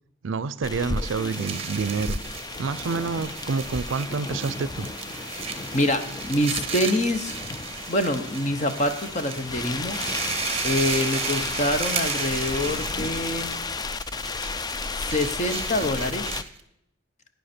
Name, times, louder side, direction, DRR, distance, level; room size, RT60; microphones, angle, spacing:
voice 1, 0.2-2.2 2.6-4.9, right 4 dB, 75° right, 17 dB, 0.5 m, -28 dB
sound 1, 0.6-16.4, left 4 dB, 20° left, 0.3 m, -33 dB
sound 2, 0.8-16.6, right 7 dB, 30° right, 1.0 m, -35 dB
sound 3, 2.7-11.7, right 1 dB, 15° right, 4.5 m, -47 dB
voice 2, 5.3-7.4 7.9-10.0 10.6-13.5 15.0-16.3, left 1 dB, 35° left, 8 dB, 0.9 m, -26 dB
11.5 x 9.3 x 4.4 m, 0.79 s
head